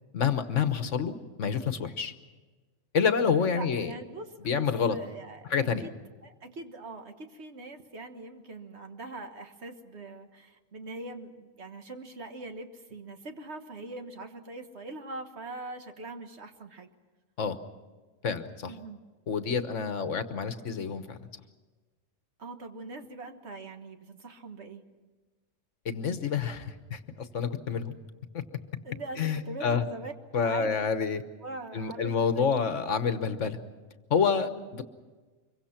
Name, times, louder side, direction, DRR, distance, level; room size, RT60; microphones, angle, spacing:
voice 1, 0.1-2.1 2.9-3.9 4.4-5.0 5.5-5.8 17.4-17.6 18.2-18.7 19.3-21.2 25.8-28.0 28.3-28.4 29.2-29.9 30.3-31.2 31.7-33.6 34.1-34.8, left 6 dB, 75° left, 10 dB, 1.5 m, -28 dB
voice 2, 3.4-5.9 6.2-16.9 18.7-19.0 20.0-20.1 22.4-24.8 28.8-30.1 30.4-30.7 31.4-32.5 34.4-34.7, right 2 dB, 60° right, 6 dB, 1.8 m, -42 dB
25.5 x 23.5 x 5.9 m, 1.3 s
omnidirectional pair, 1.3 m